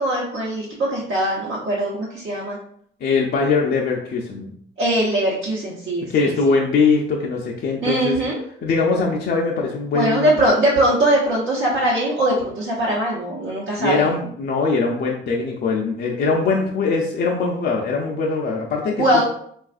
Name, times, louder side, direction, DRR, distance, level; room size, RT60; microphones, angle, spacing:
voice 1, 0.0-2.6 4.8-6.3 7.8-8.4 9.9-14.1 19.0-19.2, right 1 dB, 70° right, -7 dB, 0.9 m, -21 dB
voice 2, 3.0-4.5 6.1-8.2 8.6-10.4 13.8-19.2, left 4 dB, 55° left, -1 dB, 0.5 m, -21 dB
3.4 x 2.4 x 2.4 m, 0.65 s
cardioid pair, 90°, 20 cm